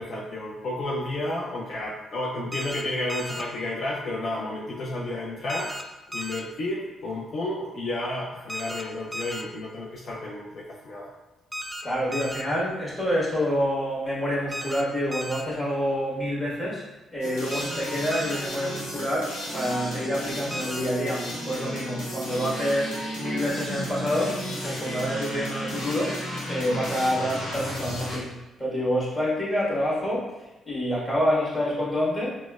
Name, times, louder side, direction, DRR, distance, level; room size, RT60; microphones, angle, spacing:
voice 1, 0.0-5.7 6.1-11.1, left 1 dB, 60° left, -4 dB, 0.5 m, -31 dB
sound 1, 2.5-2.8 3.1-3.4 5.5-5.8 6.1-6.4 8.5-8.8 9.1-9.4 11.5-11.8 12.1-12.4 14.5-14.8 15.1-15.4 17.5-17.8 18.1-18.4 20.5-20.8, equal, 10° right, 0.4 m, -34 dB
voice 2, 11.8-16.9 17.1-32.3, equal, 20° left, -8 dB, 1.5 m, -27 dB
sound 2, 17.2-28.2, equal, 90° left, 1.0 m, -34 dB
4.1 x 2.1 x 2.3 m, 1.0 s
cardioid pair, 80°, 0 cm